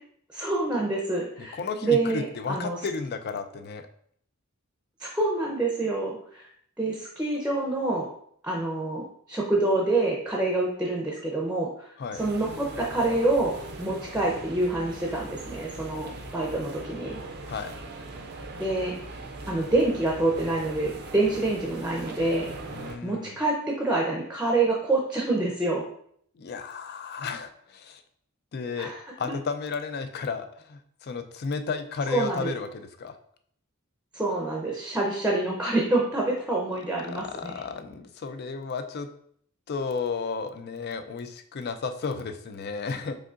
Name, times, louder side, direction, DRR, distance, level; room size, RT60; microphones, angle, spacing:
voice 1, 0.3-2.8 5.0-6.4 6.8-8.1 8.4-11.9 12.1-17.2 18.6-19.0 19.5-22.5 23.0-25.8 28.8-29.0 32.1-32.5 34.1-37.5, right 2 dB, 5° right, -2 dB, 0.6 m, -27 dB
voice 2, 1.4-3.9 12.0-12.2 17.5-17.8 22.7-23.4 26.4-28.0 28.5-33.2 37.1-39.1 39.7-43.2, left 4 dB, 50° left, 9 dB, 0.4 m, -33 dB
sound 1, 12.2-23.0, right 2 dB, 50° right, 0.5 m, -40 dB
5.0 x 3.7 x 2.5 m, 0.65 s
head